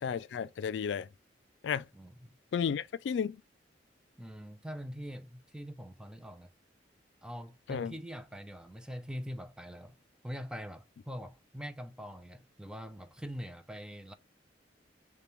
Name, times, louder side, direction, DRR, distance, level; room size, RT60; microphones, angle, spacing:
voice 1, 0.0-1.1 1.6-1.8 2.5-3.4 7.7-7.9, left 7 dB, 75° left, 0.3 m, -33 dB
voice 2, 1.9-2.4 4.2-6.5 7.2-10.0 10.2-14.1, equal, 5° right, 0.5 m, -43 dB
6.7 x 2.2 x 3.0 m
head